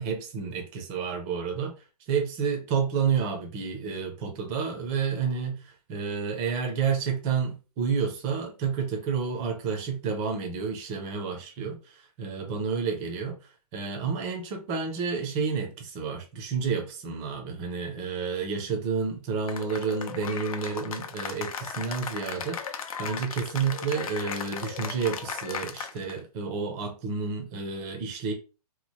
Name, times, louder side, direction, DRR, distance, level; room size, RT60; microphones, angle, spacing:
voice 1, 0.0-1.7 2.1-13.4 13.7-28.3, right 6 dB, 15° right, 0.4 m, -30 dB
Cheering / Applause, 19.5-26.2, left 6 dB, 60° left, 0.6 m, -36 dB
3.0 x 2.0 x 4.1 m
hypercardioid pair, 165°, 20 cm